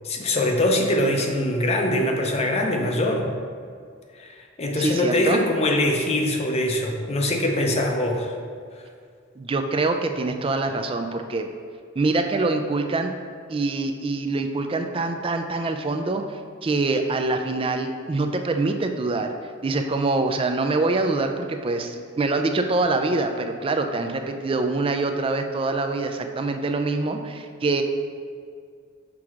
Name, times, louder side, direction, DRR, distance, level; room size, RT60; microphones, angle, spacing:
voice 1, 0.0-3.3 4.2-8.3, left 1 dB, 30° left, 2 dB, 0.6 m, -23 dB
voice 2, 4.8-5.4 9.4-11.5 12.0-13.1 13.5-19.3 19.6-27.8, right 3 dB, 25° right, 6 dB, 0.4 m, -25 dB
6.1 x 3.7 x 4.8 m, 2.2 s
head